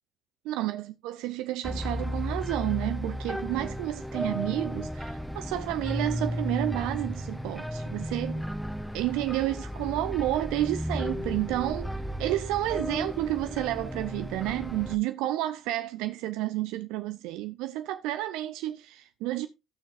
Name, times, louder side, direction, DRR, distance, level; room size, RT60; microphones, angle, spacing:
voice 1, 0.5-8.4 8.9-19.5, right 15 dB, 65° right, 0.5 m, -30 dB
sound 1, 1.6-15.0, equal, ahead, 0.8 m, -34 dB
17.0 x 6.2 x 2.5 m
figure-of-eight pair, 50°, 0 cm